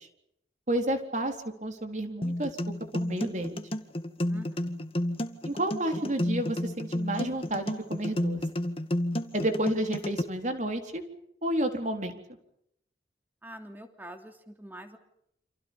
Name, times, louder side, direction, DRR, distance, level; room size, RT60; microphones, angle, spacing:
voice 1, 0.7-1.4 1.6-2.6 2.9-3.6 5.4-8.4 9.3-11.0 11.4-12.2, right 1 dB, 40° right, 5 dB, 4.0 m, -30 dB
sound 1, 2.2-10.2, left 1 dB, 30° left, 1.9 m, -31 dB
voice 2, 4.3-4.8 13.4-15.0, right 1 dB, 10° right, 6 dB, 3.1 m, -45 dB
29.0 x 27.5 x 5.5 m, 0.74 s
head